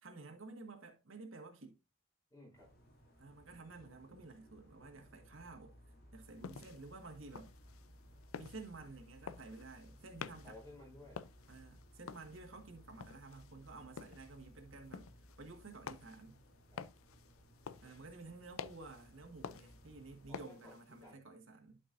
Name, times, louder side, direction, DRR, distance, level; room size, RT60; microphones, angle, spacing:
voice 1, 0.0-1.8 3.2-5.7 6.1-7.5 8.3-10.6 11.5-15.1 15.4-16.4 17.8-21.8, right 3 dB, 75° right, 1.6 m, -52 dB
voice 2, 2.3-2.7 10.4-11.2 16.7-16.8 17.6-18.0 20.3-21.3, left 1 dB, 15° left, 4.5 m, -57 dB
sound 1, 2.5-20.4, equal, 45° left, 3.0 m, -61 dB
sound 2, 6.2-21.1, left 6 dB, 85° left, 0.5 m, -52 dB
11.5 x 5.3 x 2.6 m
head